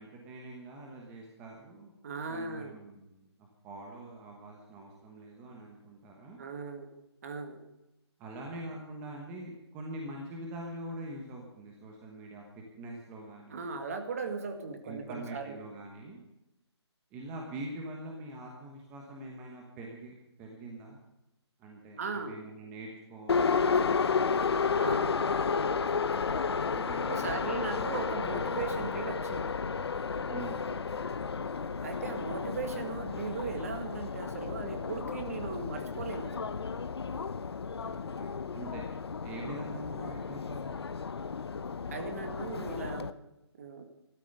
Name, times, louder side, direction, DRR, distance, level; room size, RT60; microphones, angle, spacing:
voice 1, 0.0-1.9 2.3-3.3 3.6-6.4 8.2-13.7 14.8-16.2 17.1-21.0 21.6-24.0 26.7-27.4 27.7-28.1 30.3-30.6 37.8-38.9 39.2-40.8, right 2 dB, 10° right, 0 dB, 1.1 m, -44 dB
voice 2, 2.0-2.8 6.4-6.9 7.2-7.6 13.5-15.6 22.0-22.3 24.8-25.2 27.0-29.6 31.8-36.5 41.9-43.2 43.5-43.8, right 4 dB, 35° right, 6 dB, 2.1 m, -38 dB
Subway metro underground, 23.3-43.1, left 5 dB, 65° left, 0.8 m, -32 dB
13.5 x 13.0 x 6.6 m, 0.90 s
hypercardioid pair, 170°, 15 cm